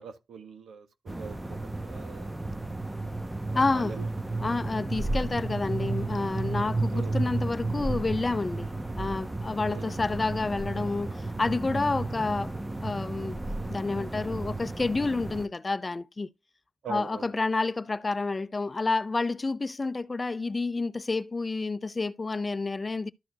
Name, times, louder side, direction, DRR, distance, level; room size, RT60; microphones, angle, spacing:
voice 1, 0.0-2.3 3.5-4.1 6.9-7.2 9.7-9.9 16.8-17.3, right 6 dB, 85° right, 1.5 m, -42 dB
sound 1, 1.1-15.5, right 2 dB, 15° right, 0.9 m, -33 dB
voice 2, 3.5-4.0 4.4-8.7 9.0-12.5 12.8-13.4 13.7-16.3 16.9-23.1, left 3 dB, 30° left, 0.6 m, -29 dB
13.0 x 4.5 x 2.8 m
cardioid pair, 75°, 0 cm